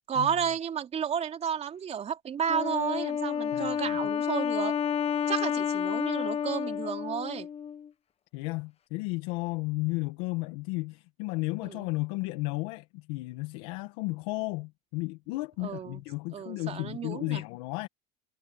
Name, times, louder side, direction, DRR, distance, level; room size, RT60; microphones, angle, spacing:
voice 1, 0.1-4.8 5.3-7.5 11.6-11.9 15.6-16.0 16.3-17.4, right 8 dB, 35° right, 3.3 m, -32 dB
Wind instrument woodwind instrument, 2.5-7.9, left 8 dB, 35° left, 1.3 m, -30 dB
voice 2, 3.5-4.0 8.3-17.9, left 24 dB, 75° left, 1.9 m, -33 dB
supercardioid pair, 110°, 19 cm